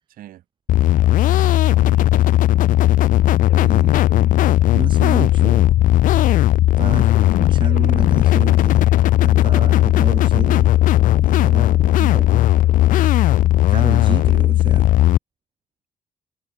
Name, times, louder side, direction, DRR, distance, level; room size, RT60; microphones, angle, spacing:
voice 1, 0.1-0.4 1.4-2.5, right 13 dB, 85° right, 7.6 m, -43 dB
sound 1, 0.7-15.2, left 14 dB, 70° left, 0.5 m, -16 dB
voice 2, 3.6-4.0 4.7-5.7 6.5-8.9 9.2-10.8 11.2-12.4 13.7-14.9, right 6 dB, 35° right, 1.0 m, -31 dB
cardioid pair, 130°, 14 cm